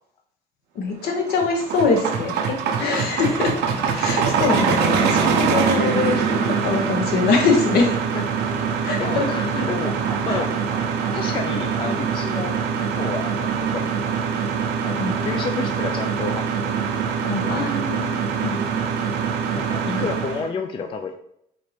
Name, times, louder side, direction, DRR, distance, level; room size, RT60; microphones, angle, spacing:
voice 1, 0.7-3.5 3.9-8.0 8.8-9.3 10.3-10.4 14.9-15.2 17.2-18.6 19.8-20.1, left 4 dB, 70° left, 2 dB, 0.9 m, -23 dB
sound 1, 1.1-20.5, right 6 dB, 80° right, 0.6 m, -24 dB
voice 2, 8.1-8.5 9.0-10.0 10.3-10.5 11.1-14.2 14.8-16.8 17.2-17.7 19.6-21.1, left 5 dB, 30° left, 5 dB, 0.3 m, -31 dB
sound 2, 9.7-13.1 13.4-13.5, right 2 dB, 20° right, 0.8 m, -39 dB
4.3 x 2.6 x 3.2 m, 0.72 s
cardioid pair, 110°, 17 cm